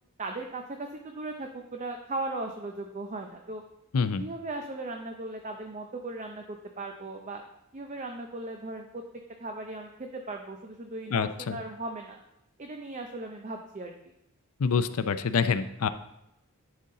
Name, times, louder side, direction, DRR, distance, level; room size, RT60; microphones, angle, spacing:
voice 1, 0.2-3.6 4.2-7.4 7.7-9.0 9.4-12.2 12.6-13.9, right 2 dB, 35° right, 3 dB, 0.5 m, -37 dB
voice 2, 11.1-11.6 14.6-15.9, left 5 dB, 75° left, 11 dB, 0.5 m, -26 dB
11.5 x 4.2 x 3.8 m, 0.86 s
head